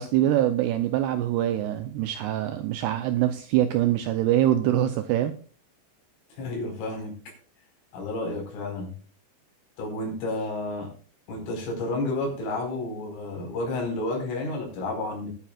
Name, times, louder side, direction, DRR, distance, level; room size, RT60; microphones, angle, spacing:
voice 1, 0.0-5.4, right 12 dB, 80° right, 9 dB, 2.4 m, -24 dB
voice 2, 6.3-7.2 7.9-9.0 9.8-10.9 11.3-15.3, left 2 dB, 85° left, 1 dB, 7.3 m, -31 dB
21.0 x 9.3 x 2.4 m, 0.39 s
omnidirectional pair, 5.6 m